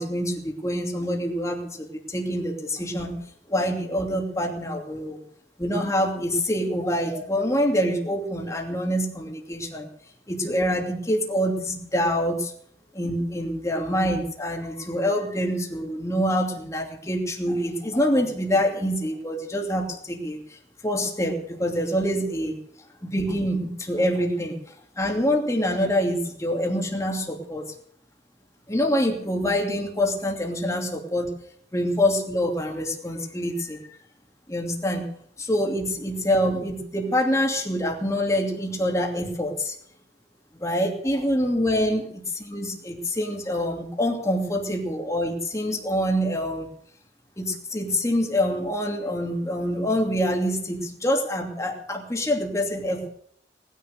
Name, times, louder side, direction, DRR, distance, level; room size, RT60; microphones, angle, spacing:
voice 1, 0.0-3.2 3.5-5.2 5.6-9.9 10.3-12.5 12.9-20.6 20.8-22.6 23.0-24.5 25.0-27.7 28.7-31.3 31.7-34.0 34.5-35.0 35.4-39.8 40.5-42.1 42.5-46.7 47.4-53.1, equal, 15° left, 1 dB, 2.7 m, -25 dB
19.0 x 10.5 x 6.6 m, 0.65 s
head